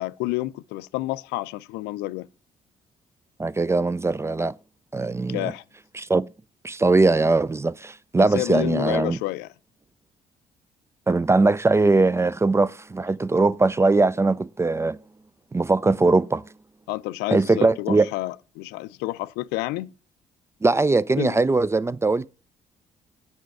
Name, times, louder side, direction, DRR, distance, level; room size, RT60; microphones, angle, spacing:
voice 1, 0.0-2.3 5.3-5.6 8.2-9.5 16.9-19.9 21.2-21.4, left 18 dB, 70° left, 0.4 m, -29 dB
voice 2, 3.4-4.5 4.9-5.5 6.0-6.3 6.6-9.2 11.1-15.0 15.5-16.4 17.3-18.1 20.6-22.3, right 3 dB, 15° right, 0.3 m, -20 dB
8.0 x 5.1 x 4.7 m
hypercardioid pair, 50°, 17 cm